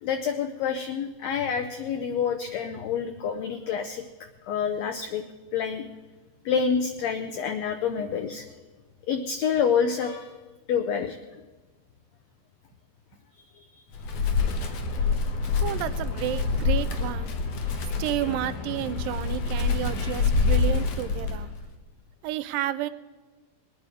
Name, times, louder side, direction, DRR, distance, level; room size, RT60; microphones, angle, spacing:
voice 1, 0.0-4.0 4.4-5.2 5.5-5.9 6.4-8.5 9.1-10.3 10.7-11.4 13.5-13.8 14.6-15.2 17.7-18.0, left 7 dB, 85° left, 7 dB, 1.5 m, -28 dB
Wind, 13.9-21.7, left 4 dB, 60° left, 1.9 m, -26 dB
voice 2, 15.6-17.4 18.0-21.5 22.2-22.9, right 13 dB, 85° right, 13 dB, 2.3 m, -31 dB
20.5 x 9.4 x 4.8 m, 1.2 s
omnidirectional pair, 3.9 m